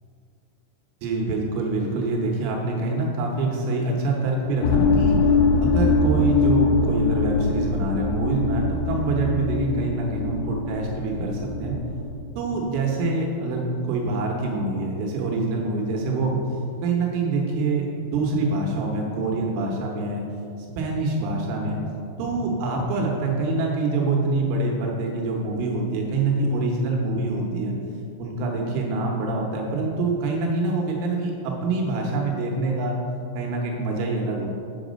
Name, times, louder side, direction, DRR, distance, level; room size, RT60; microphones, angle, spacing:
voice 1, 1.0-5.2 5.6-11.8 12.4-16.4 16.8-20.2 20.8-21.8 22.2-27.7 28.2-33.0 33.3-34.5, right 3 dB, 75° right, -1 dB, 3.3 m, -25 dB
sound 1, 4.6-12.1, left 4 dB, 80° left, 3.0 m, -23 dB
8.1 x 7.1 x 5.1 m, 2.6 s
omnidirectional pair, 6.0 m